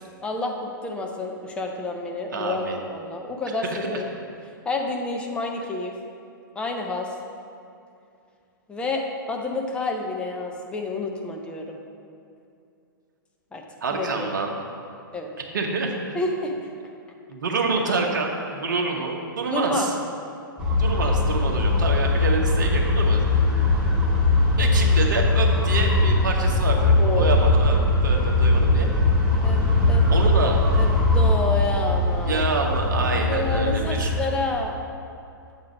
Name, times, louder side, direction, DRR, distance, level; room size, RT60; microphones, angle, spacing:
voice 1, 0.2-2.6 2.9-4.0 4.6-6.0 6.6-7.1 8.7-11.8 13.5-13.6 13.9-14.3 15.1-15.3 16.1-16.7 19.5-19.9 27.0-27.4 29.4-29.6 29.9-30.0 30.8-30.9 31.1-32.4 33.3-34.8, left 2 dB, 10° left, 1 dB, 0.5 m, -29 dB
voice 2, 2.3-2.8 3.8-3.9 13.8-14.5 15.5-15.9 17.3-19.9 20.8-23.2 24.6-28.9 30.1-30.6 32.2-34.1, right 3 dB, 60° right, 1 dB, 1.0 m, -27 dB
sound 1, 20.6-34.2, left 2 dB, 10° right, 1.4 m, -20 dB
7.2 x 3.8 x 6.1 m, 2.5 s
figure-of-eight pair, 115°, 12 cm